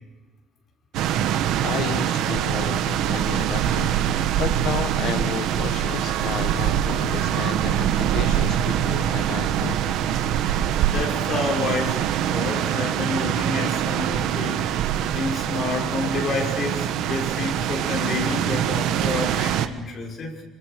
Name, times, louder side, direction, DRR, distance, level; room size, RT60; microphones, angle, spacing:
sound 1, 0.9-19.7, right 10 dB, 65° right, 1.2 m, -24 dB
voice 1, 1.6-3.9 4.4-9.8, left 10 dB, 55° left, 10 dB, 1.2 m, -32 dB
voice 2, 10.9-12.0 12.3-20.4, left 4 dB, 35° left, 0 dB, 5.8 m, -29 dB
28.5 x 25.5 x 5.1 m, 1.2 s
cardioid pair, 175°, 0 cm